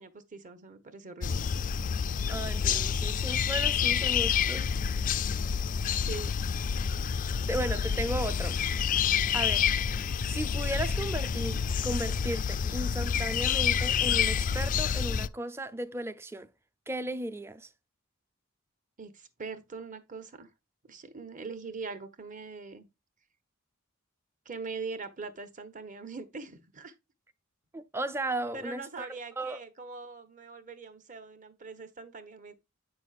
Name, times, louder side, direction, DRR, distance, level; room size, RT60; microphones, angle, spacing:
voice 1, 0.0-1.5 6.0-6.3 19.0-20.5 20.8-22.9 24.4-26.9 28.5-32.5, right 4 dB, 40° right, 1.0 m, -42 dB
sound 1, 1.2-15.3, left 7 dB, 40° left, 0.3 m, -28 dB
voice 2, 2.3-4.7 7.5-8.6 9.3-9.7 10.3-16.5 16.9-17.7 27.7-29.1 29.4-29.6, right 1 dB, 10° right, 0.5 m, -35 dB
8.5 x 6.1 x 2.4 m
head